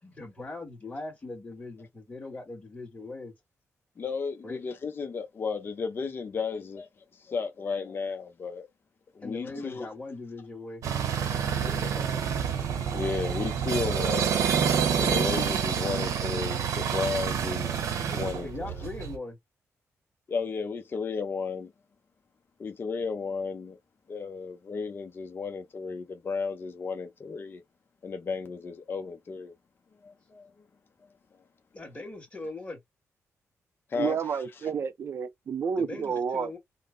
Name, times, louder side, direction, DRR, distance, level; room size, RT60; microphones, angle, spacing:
voice 1, 0.0-3.4 4.4-4.6 9.2-10.8 11.3-12.2 18.4-19.4 31.7-32.8 35.8-36.6, left 2 dB, 20° left, 1.8 m, -40 dB
voice 2, 4.0-8.7 9.1-9.9 12.9-14.4 15.0-18.8 20.3-21.7 22.6-23.8 24.1-27.6 28.0-29.5 30.0-30.5 33.9-34.4, left 5 dB, 40° left, 0.7 m, -34 dB
sound 1, 10.8-19.2, right 7 dB, 80° right, 1.0 m, -28 dB
voice 3, 34.0-36.5, right 6 dB, 50° right, 0.6 m, -30 dB
3.6 x 2.1 x 3.9 m
cardioid pair, 105°, 5 cm